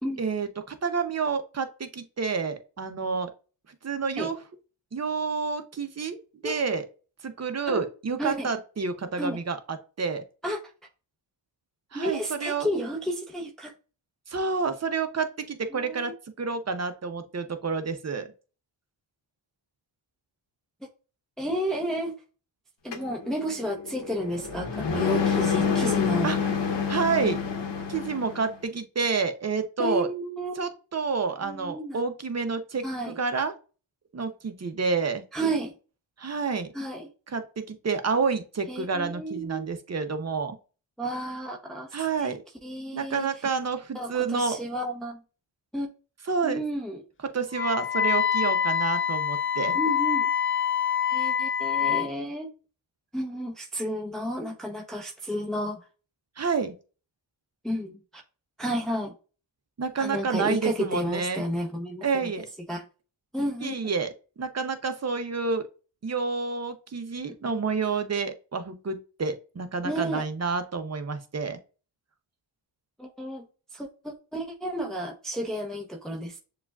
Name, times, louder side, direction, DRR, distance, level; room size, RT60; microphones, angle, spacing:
voice 1, 0.2-3.3 3.8-4.4 4.9-6.2 6.4-6.9 7.2-10.2 11.9-12.7 14.3-18.3 26.2-26.4 26.9-27.4 27.9-30.1 30.6-33.5 34.1-35.2 36.2-36.7 37.3-40.5 41.9-42.4 42.9-44.6 46.3-46.6 47.2-49.8 56.4-56.7 59.8-61.4 62.0-62.5 63.6-64.1 64.4-65.7 66.0-71.6, right 5 dB, 35° right, 8 dB, 0.7 m, -29 dB
voice 2, 6.4-6.8 7.7-7.8 8.2-8.5 9.2-9.4 10.4-10.6 11.9-13.7 15.7-16.1 21.4-22.2 22.8-26.3 29.8-30.6 31.4-32.0 32.8-33.2 35.3-35.7 36.7-37.1 38.7-39.6 41.0-41.9 42.2-42.3 42.6-43.3 43.9-45.2 45.7-45.9 46.4-47.0 49.7-50.3 51.1-52.5 53.1-55.9 57.6-58.2 58.6-59.1 60.0-62.3 62.7-62.8 63.3-63.9 67.4-67.6 69.8-70.3 73.0-73.5 73.7-76.4, equal, ahead, 1 dB, 0.8 m, -32 dB
sound 1, 22.9-28.5, left 6 dB, 60° left, 0.9 m, -28 dB
Wind instrument woodwind instrument, 47.5-52.1, left 8 dB, 30° left, 0.3 m, -25 dB
6.7 x 2.4 x 2.3 m, 0.35 s
cardioid pair, 55°, 48 cm